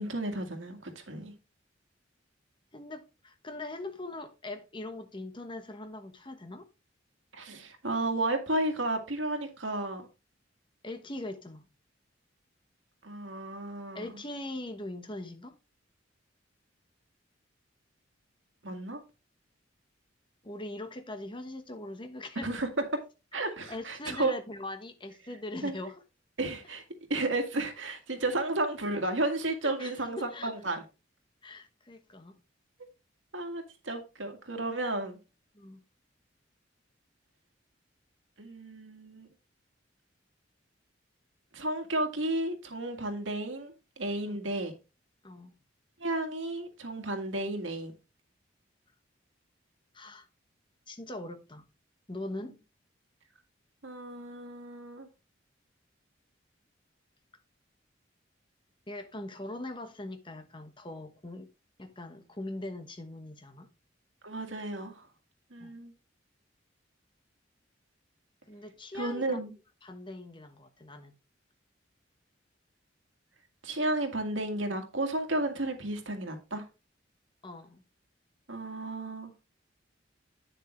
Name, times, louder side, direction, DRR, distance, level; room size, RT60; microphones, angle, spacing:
voice 1, 0.0-1.3 7.3-10.1 13.0-14.1 18.6-19.0 22.4-22.7 23.3-24.3 25.6-25.7 26.4-26.8 27.1-30.8 33.3-35.2 38.4-39.3 41.5-44.7 46.0-47.9 53.8-55.1 64.2-65.0 65.5-65.9 68.9-69.5 73.6-76.6 78.5-79.3, right 2 dB, 80° right, 2.0 m, -33 dB
voice 2, 2.7-6.7 10.8-11.7 13.9-15.5 20.4-22.5 23.4-26.0 29.6-30.5 31.4-32.4 35.5-35.8 44.2-44.4 45.2-45.5 49.9-50.3 50.9-51.7 52.1-52.6 58.9-61.5 61.8-63.7 65.6-65.7 68.5-69.4 69.8-71.1 77.4-77.8, left 2 dB, 25° left, 1.2 m, -41 dB
9.4 x 6.7 x 3.2 m
head